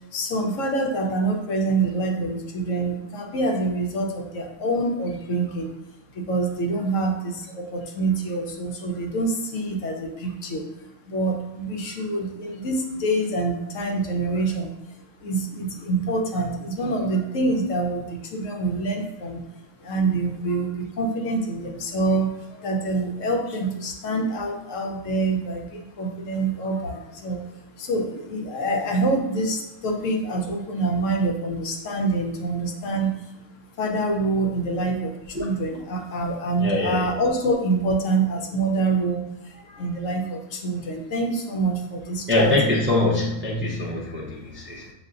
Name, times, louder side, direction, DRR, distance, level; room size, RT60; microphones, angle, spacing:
voice 1, 0.1-5.8 6.1-10.7 11.1-19.4 19.8-27.4 27.8-33.3 33.8-42.5, right 2 dB, 90° left, 2 dB, 1.1 m, -26 dB
voice 2, 36.6-37.2 39.5-39.8 42.3-44.9, left 2 dB, 15° right, -4 dB, 0.4 m, -24 dB
6.6 x 2.7 x 2.5 m, 0.90 s
omnidirectional pair, 1.3 m